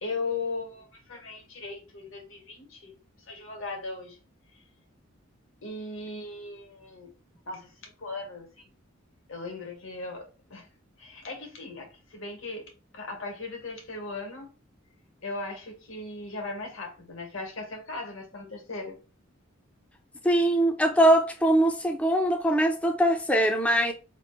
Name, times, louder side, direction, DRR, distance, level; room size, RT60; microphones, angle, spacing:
voice 1, 0.0-2.9 3.2-4.2 4.5-4.6 5.6-7.1 7.5-8.7 9.3-10.7 11.0-12.6 12.9-14.5 15.2-19.0, left 3 dB, 75° left, 1.4 m, -38 dB
voice 2, 20.2-23.9, right 1 dB, 5° left, 0.3 m, -22 dB
3.0 x 2.4 x 4.3 m
head